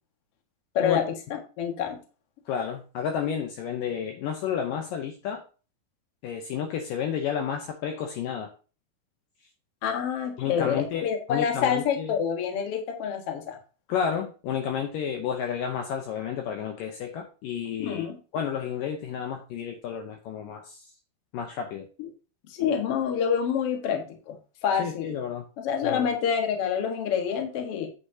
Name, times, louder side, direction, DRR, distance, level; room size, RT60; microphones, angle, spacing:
voice 1, 0.7-2.0 9.8-13.6 17.8-18.2 22.5-24.4 24.6-25.1 25.6-27.9, left 7 dB, 50° left, 4 dB, 1.9 m, -27 dB
voice 2, 2.5-5.4 6.2-8.5 10.4-12.1 13.9-18.0 18.3-20.8 21.3-21.9 24.8-25.4 25.8-26.1, left 8 dB, 75° left, 4 dB, 2.3 m, -31 dB
8.6 x 8.1 x 2.8 m, 0.35 s
omnidirectional pair, 4.4 m